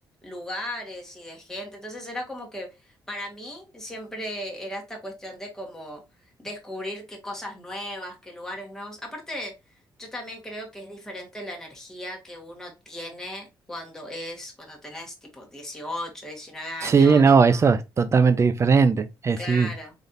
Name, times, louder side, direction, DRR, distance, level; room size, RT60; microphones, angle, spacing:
voice 1, 0.2-6.0 6.4-9.5 10.0-17.2 19.4-19.9, left 1 dB, 5° left, 1.5 m, -37 dB
voice 2, 16.8-19.7, right 5 dB, 35° right, 0.5 m, -18 dB
4.0 x 3.3 x 2.6 m
cardioid pair, 105°, 9 cm